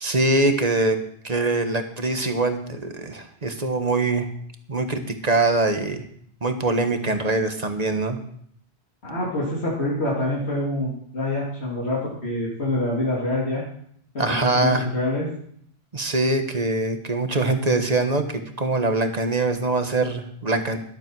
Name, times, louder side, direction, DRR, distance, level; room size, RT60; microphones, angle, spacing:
voice 1, 0.0-4.3 4.7-6.0 6.4-8.2 14.2-14.9 15.9-20.8, right 2 dB, 40° right, 7 dB, 1.4 m, -23 dB
voice 2, 9.0-13.6 14.1-15.3, left 1 dB, 70° left, -6 dB, 3.1 m, -26 dB
13.0 x 12.0 x 4.7 m, 0.65 s
omnidirectional pair, 1.1 m